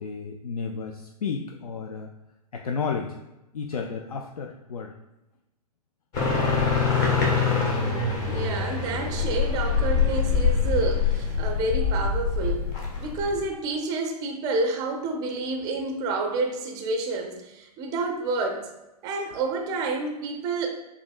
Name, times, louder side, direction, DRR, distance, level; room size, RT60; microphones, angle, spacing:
voice 1, 0.0-2.1 2.5-3.2 3.5-4.9, left 5 dB, 65° left, 3 dB, 0.4 m, -32 dB
sound 1, 6.1-13.4, left 5 dB, 30° left, 0.9 m, -24 dB
voice 2, 8.3-12.7 13.0-18.7 19.0-20.7, right 3 dB, 20° right, 3 dB, 0.4 m, -29 dB
6.7 x 2.5 x 2.4 m, 0.94 s
figure-of-eight pair, 110°, 20 cm